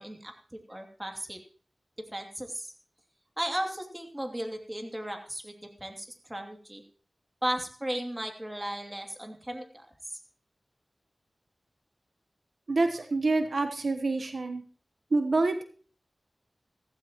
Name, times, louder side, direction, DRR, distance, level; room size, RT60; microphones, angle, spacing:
voice 1, 0.0-1.4 2.1-2.7 3.4-5.5 5.8-6.8 7.4-9.9, right 1 dB, 15° right, 4 dB, 2.8 m, -35 dB
voice 2, 12.7-14.6 15.1-15.6, right 3 dB, 75° right, 7 dB, 1.1 m, -27 dB
15.5 x 15.0 x 3.0 m, 0.41 s
wide cardioid pair, 65°, 0 cm